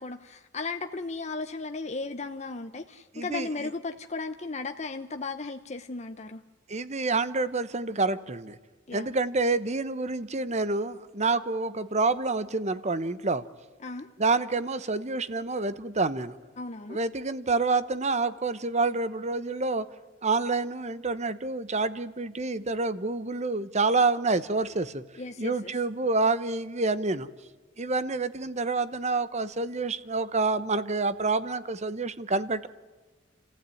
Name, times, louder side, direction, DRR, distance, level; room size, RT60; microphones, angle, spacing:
voice 1, 0.0-6.4 8.9-9.1 13.8-14.1 16.6-17.0 25.2-25.7, left 3 dB, 35° left, 6 dB, 0.9 m, -36 dB
voice 2, 3.1-3.5 6.7-8.6 8.9-13.4 14.2-16.4 16.9-19.8 20.2-25.0 25.4-27.3 27.8-32.7, right 3 dB, 35° right, 14 dB, 1.0 m, -28 dB
29.0 x 15.0 x 9.2 m, 1.4 s
head